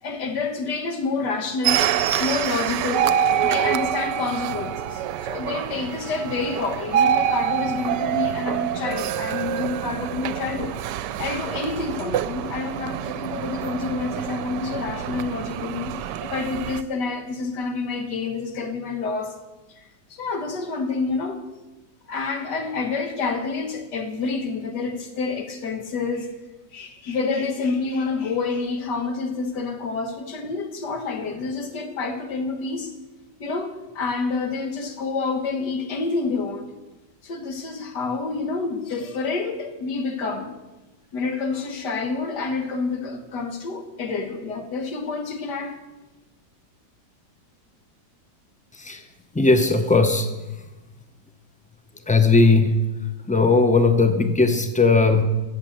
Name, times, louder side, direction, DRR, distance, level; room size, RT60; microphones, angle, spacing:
voice 1, 0.0-1.8 2.2-3.1 3.4-10.8 11.2-19.4 19.8-21.4 22.1-26.3 26.7-32.9 33.4-36.7 37.2-40.5 41.1-45.7, left 4 dB, 75° left, 6 dB, 2.0 m, -28 dB
sound 1, 1.6-16.8, right 10 dB, 80° right, 1.2 m, -26 dB
voice 2, 49.3-50.3 52.1-52.8 53.3-55.2, left 3 dB, 10° left, 7 dB, 0.4 m, -18 dB
14.0 x 7.7 x 7.8 m, 1.1 s
omnidirectional pair, 1.9 m